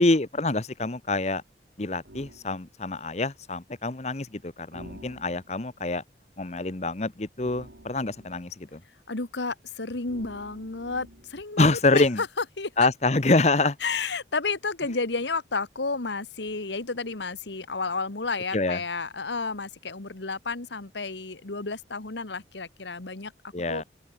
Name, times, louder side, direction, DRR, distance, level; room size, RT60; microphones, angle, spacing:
voice 1, 0.0-1.4 1.8-6.0 6.4-8.8 11.6-12.2 12.8-13.7 18.5-18.8 23.5-23.8, left 2 dB, 40° left, 1.0 m, -25 dB
sound 1, 2.0-2.5 4.7-5.7 7.4-8.5 10.0-11.4, right 1 dB, 75° right, 5.7 m, -49 dB
voice 2, 9.1-12.9 13.8-23.3 23.7-23.8, left 4 dB, 80° left, 1.7 m, -31 dB
open air
head